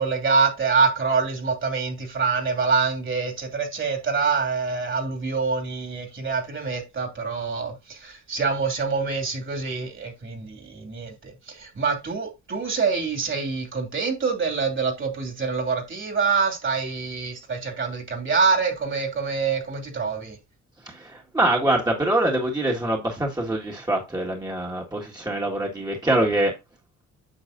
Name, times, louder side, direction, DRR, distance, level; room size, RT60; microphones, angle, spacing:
voice 1, 0.0-20.4, right 5 dB, 40° right, 2.8 m, -25 dB
voice 2, 20.9-26.5, right 1 dB, 15° right, 1.7 m, -24 dB
9.1 x 6.1 x 2.6 m
cardioid pair, 90°, 30 cm